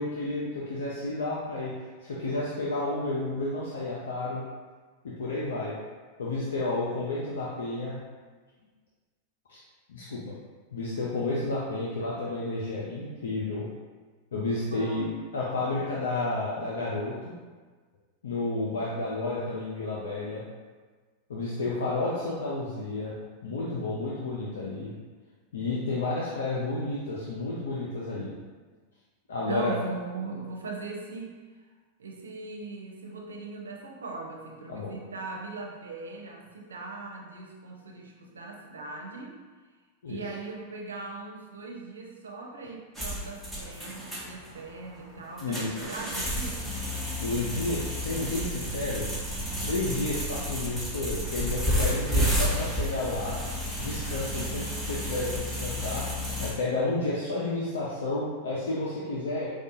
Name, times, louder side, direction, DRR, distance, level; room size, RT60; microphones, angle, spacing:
voice 1, 0.0-1.7 2.0-4.4 5.0-5.7 6.2-8.0 9.5-9.6 9.9-10.3 10.7-13.7 14.3-15.1 15.3-17.1 18.2-20.4 21.3-23.2 23.4-24.9 25.5-28.3 29.3-29.7 34.7-34.9 40.0-40.2 45.4-45.8 47.2-49.1 49.6-53.4 53.8-56.1 56.4-59.5, left 2 dB, 80° left, -6 dB, 0.6 m, -31 dB
voice 2, 14.7-15.2 29.5-31.4 32.0-39.4 40.1-46.6, right 3 dB, 85° right, 0 dB, 0.6 m, -40 dB
sound 1, 42.9-56.5, equal, 5° left, 1.1 m, -31 dB
4.7 x 2.3 x 2.7 m, 1.4 s
hypercardioid pair, 100°, 0 cm